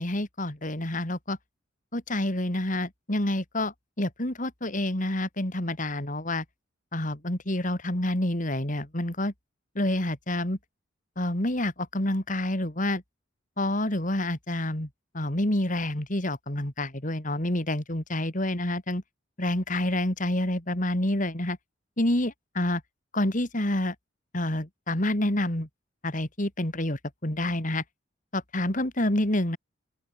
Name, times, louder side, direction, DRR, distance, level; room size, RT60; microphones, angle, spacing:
voice 1, 0.0-1.4 1.9-6.4 6.9-9.3 9.7-10.6 11.2-13.0 13.6-14.9 15.1-19.0 19.4-21.6 22.0-22.8 23.1-23.9 24.3-25.7 26.0-27.8 28.3-29.6, left 1 dB, 40° left, 3.2 m, -28 dB
open air
head